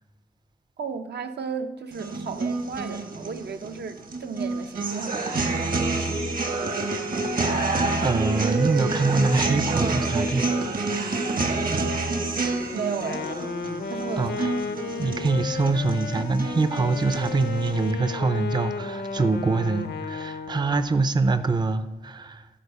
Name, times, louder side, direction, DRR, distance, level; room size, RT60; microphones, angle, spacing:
voice 1, 0.8-5.2 12.7-13.2 13.9-14.5, right 6 dB, 80° right, 0.7 m, -34 dB
sound 1, 1.9-17.9, right 3 dB, 55° right, 1.1 m, -28 dB
voice 2, 7.1-10.5 14.2-14.5 15.0-22.5, right 3 dB, 25° right, 0.4 m, -25 dB
Wind instrument woodwind instrument, 12.9-20.8, left 5 dB, 80° left, 0.6 m, -33 dB
12.5 x 4.7 x 6.7 m
wide cardioid pair, 130°, 17 cm